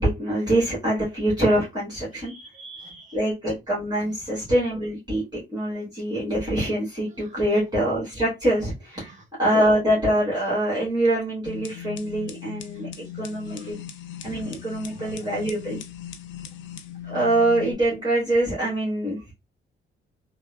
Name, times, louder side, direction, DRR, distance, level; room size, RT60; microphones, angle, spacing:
voice 1, 0.0-2.3 3.1-9.1 9.4-12.9 13.2-13.8 14.2-15.8 17.0-19.3, right 1 dB, 20° right, 1.4 m, -24 dB
voice 2, 2.1-3.2 4.0-4.1 7.1-7.6 9.0-9.2 12.7-12.8 13.4-13.7 14.3-14.6 14.8-15.4, right 3 dB, 35° right, 1.0 m, -47 dB
sound 1, 11.5-17.7, left 9 dB, 75° left, 0.4 m, -38 dB
3.2 x 2.1 x 2.2 m
cardioid pair, 90°, 20 cm